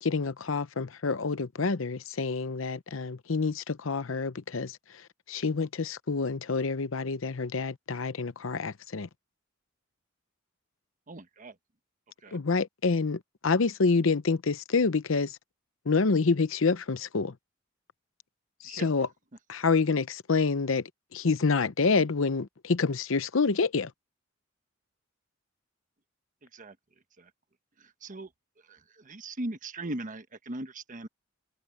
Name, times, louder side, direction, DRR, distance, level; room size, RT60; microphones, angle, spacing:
voice 1, 0.0-9.1 12.3-15.4 15.9-17.4 18.6-19.1 19.5-23.9, left 4 dB, 70° left, 0.8 m, -27 dB
voice 2, 11.1-11.5 12.2-12.4 18.6-18.9 26.5-26.8 27.2-27.3 27.8-28.3 28.7-31.1, right 1 dB, 40° right, 1.2 m, -39 dB
head